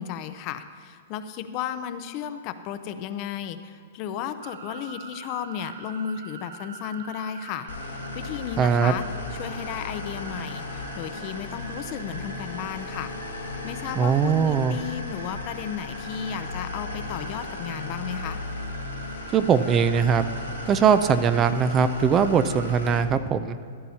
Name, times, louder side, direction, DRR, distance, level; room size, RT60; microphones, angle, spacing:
voice 1, 0.0-9.0 9.3-13.1 13.6-18.4, left 9 dB, 45° left, 11 dB, 0.6 m, -34 dB
sound 1, 4.4-22.9, right 5 dB, 80° right, 0.7 m, -43 dB
sound 2, 7.7-23.0, left 3 dB, 85° left, 1.5 m, -36 dB
voice 2, 8.6-8.9 14.0-14.8 19.3-20.3 20.7-23.6, right 6 dB, 25° right, 11 dB, 0.4 m, -21 dB
14.0 x 11.0 x 2.8 m, 2.2 s
hypercardioid pair, 125°, 0 cm